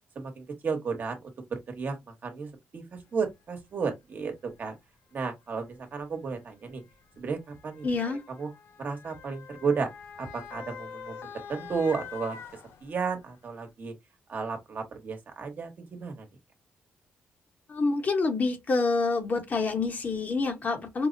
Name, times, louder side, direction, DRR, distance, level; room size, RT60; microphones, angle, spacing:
voice 1, 0.1-1.2 1.5-2.0 2.2-2.8 3.1-4.7 5.1-6.8 7.2-8.5 8.8-9.9 10.2-12.4 12.8-13.9 14.3-16.3, right 5 dB, 50° right, 1.1 m, -33 dB
Motor vehicle (road) / Siren, 3.3-3.4 4.4-4.6 5.6-13.2 13.7-13.8, left 7 dB, 85° left, 0.6 m, -45 dB
voice 2, 7.8-8.2 17.7-21.1, left 3 dB, 45° left, 1.0 m, -27 dB
4.6 x 2.0 x 2.5 m
cardioid pair, 95°, 4 cm